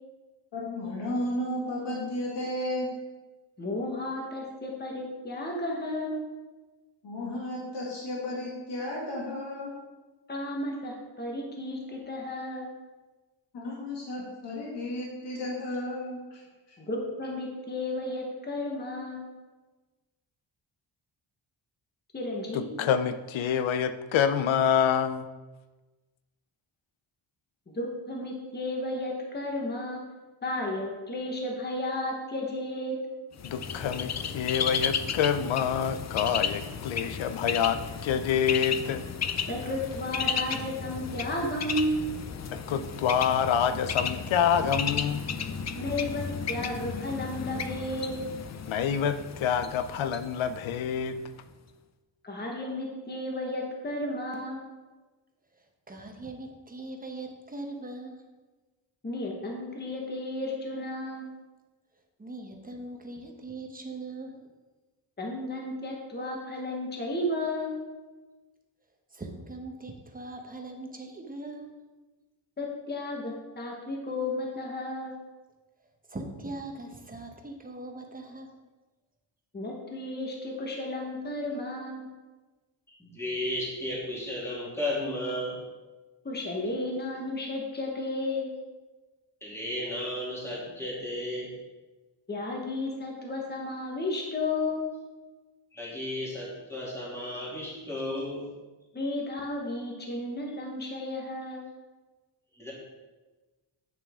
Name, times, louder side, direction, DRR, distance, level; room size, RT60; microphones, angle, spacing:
voice 1, 0.5-2.9 7.0-9.7 13.5-16.4, left 1 dB, 65° left, -4 dB, 2.2 m, -33 dB
voice 2, 3.6-6.2 10.3-12.7 16.8-19.3 22.1-22.6 27.7-30.0 30.4-33.0 39.5-42.0 45.7-48.1 52.2-54.7 59.0-61.3 65.2-67.8 72.6-75.1 79.5-82.1 86.2-88.5 92.3-94.8 98.9-101.7, left 1 dB, 20° left, 0 dB, 1.2 m, -33 dB
voice 3, 22.5-25.3 33.4-39.1 42.5-45.2 48.7-51.2, left 8 dB, 85° left, 11 dB, 0.7 m, -27 dB
Bird, 33.4-51.1, left 6 dB, 40° left, 0.5 m, -34 dB
voice 4, 55.5-58.2 62.2-64.4 69.1-71.7 76.1-78.5, right 2 dB, 20° right, 3 dB, 1.0 m, -41 dB
voice 5, 83.0-85.6 89.4-91.5 95.7-98.5 102.5-102.7, left 1 dB, 5° left, -7 dB, 2.7 m, -34 dB
8.7 x 6.5 x 3.6 m, 1.2 s
wide cardioid pair, 135°, 46 cm